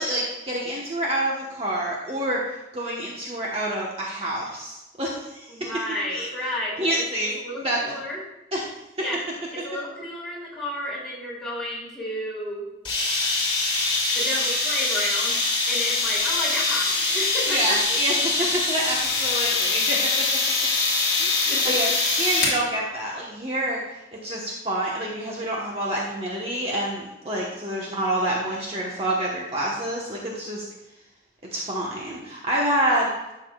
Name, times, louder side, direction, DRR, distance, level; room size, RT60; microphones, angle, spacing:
voice 1, 0.0-6.0 6.8-7.9 8.5-8.6 17.5-20.1 21.2-21.9 22.2-23.8 24.2-30.6 31.5-33.1, right 1 dB, 35° right, -4 dB, 1.2 m, -27 dB
voice 2, 5.5-7.1 7.3-8.2 9.0-9.2 9.5-12.7 14.1-15.4 15.7-17.8 21.5-21.8 27.8-28.0, left 1 dB, ahead, -7 dB, 3.0 m, -32 dB
sound 1, 12.8-22.6, left 3 dB, 30° left, 2.2 m, -23 dB
12.0 x 7.2 x 2.4 m, 0.98 s
head